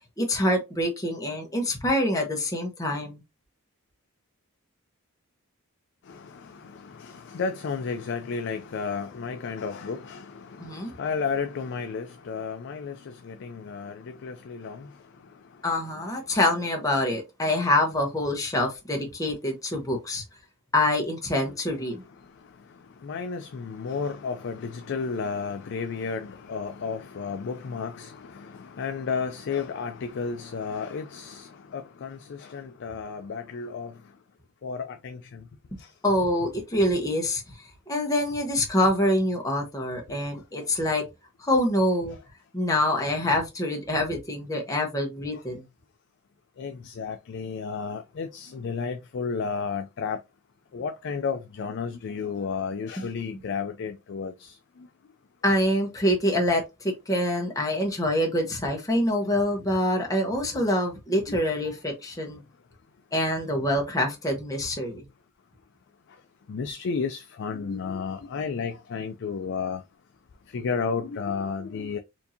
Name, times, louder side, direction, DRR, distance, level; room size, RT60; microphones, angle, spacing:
voice 1, 0.2-3.2 10.6-10.9 15.6-20.2 20.7-22.0 35.7-35.8 36.0-37.4 37.9-41.0 41.4-42.2 42.5-45.6 53.0-53.1 55.4-62.4 63.1-65.0, left 1 dB, 15° left, 1.0 m, -25 dB
voice 2, 6.1-14.9 23.0-34.0 34.6-35.4 35.8-35.9 45.3-45.4 46.6-50.2 50.7-54.9 59.0-59.1 61.3-61.7 66.5-69.8 70.5-72.0, left 5 dB, 55° left, 0.4 m, -32 dB
4.5 x 2.7 x 2.7 m
head